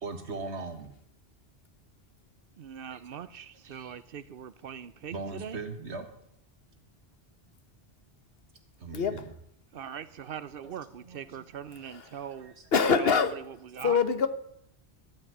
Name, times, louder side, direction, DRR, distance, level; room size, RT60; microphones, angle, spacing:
voice 1, 0.0-0.9 2.9-3.3 3.6-4.0 5.1-6.1 8.8-9.3 10.6-10.7 11.0-11.8 12.4-12.7, right 3 dB, 80° right, 1.8 m, -40 dB
voice 2, 2.6-5.6 9.7-12.5 13.0-14.0, right 8 dB, 60° right, 0.9 m, -41 dB
voice 3, 8.9-9.2 11.8-12.1 12.7-13.4 13.8-14.3, left 5 dB, 60° left, 1.3 m, -24 dB
14.0 x 6.3 x 9.3 m
omnidirectional pair, 1.1 m